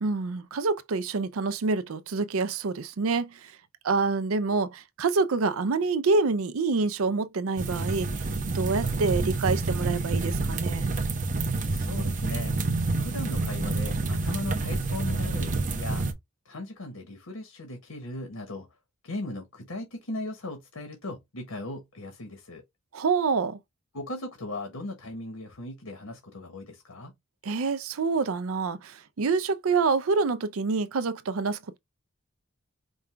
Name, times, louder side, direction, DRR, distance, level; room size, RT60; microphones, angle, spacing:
voice 1, 0.0-3.5 3.8-8.1 8.5-10.9 22.9-23.6 27.4-31.8, right 4 dB, 75° right, 0.5 m, -27 dB
sound 1, 7.6-16.1, right 3 dB, 35° right, 0.7 m, -28 dB
voice 2, 11.7-12.5 13.0-16.0 16.4-18.7 19.0-22.6 23.9-27.1, left 2 dB, 85° left, 1.3 m, -38 dB
5.3 x 2.3 x 3.3 m
head